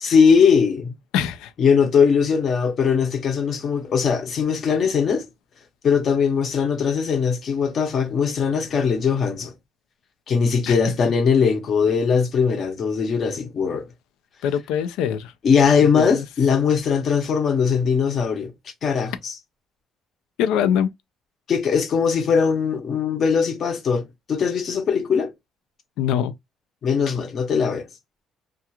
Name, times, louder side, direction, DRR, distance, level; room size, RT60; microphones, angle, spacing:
voice 1, 0.0-0.9 1.6-5.3 5.8-9.5 10.3-13.9 15.4-18.5 18.8-19.4 21.5-25.3 26.8-27.9, left 6 dB, 50° left, 0.7 m, -20 dB
voice 2, 1.1-1.5 10.7-10.8 14.4-15.3 15.8-16.2 20.4-20.9 26.0-26.3, left 9 dB, 90° left, 0.4 m, -23 dB
2.4 x 2.3 x 2.8 m
cardioid pair, 110°, 0 cm